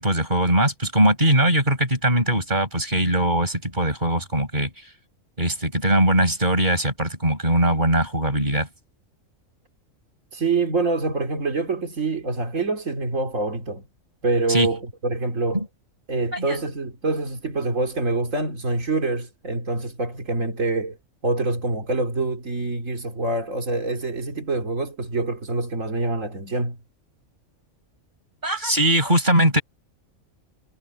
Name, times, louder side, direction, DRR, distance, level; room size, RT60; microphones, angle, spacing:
voice 1, 0.0-4.7 5.4-8.7 14.5-14.7 15.5-15.6 16.3-16.6 28.4-29.6, right 1 dB, 35° right, 6.1 m, -21 dB
voice 2, 10.3-13.9 14.2-15.6 16.1-21.0 21.2-26.8, right 3 dB, 75° right, 3.4 m, -25 dB
omnidirectional pair, 1.4 m